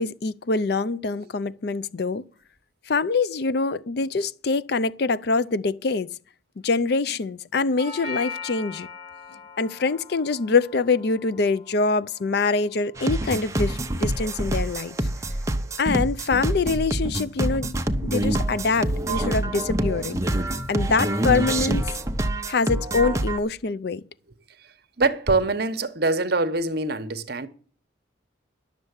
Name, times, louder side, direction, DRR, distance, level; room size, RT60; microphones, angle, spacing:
voice 1, 0.0-2.3 2.9-6.1 6.6-8.9 9.6-15.0 15.8-17.7 18.0-20.2 20.7-21.9 22.5-24.0, left 4 dB, 55° left, 0.5 m, -24 dB
Doorbell, 7.8-15.8, left 5 dB, 40° left, 4.0 m, -42 dB
sound 1, 13.0-23.4, right 1 dB, 15° right, 0.8 m, -26 dB
voice 2, 25.0-27.5, right 3 dB, 55° right, 1.0 m, -24 dB
11.5 x 6.7 x 8.0 m
head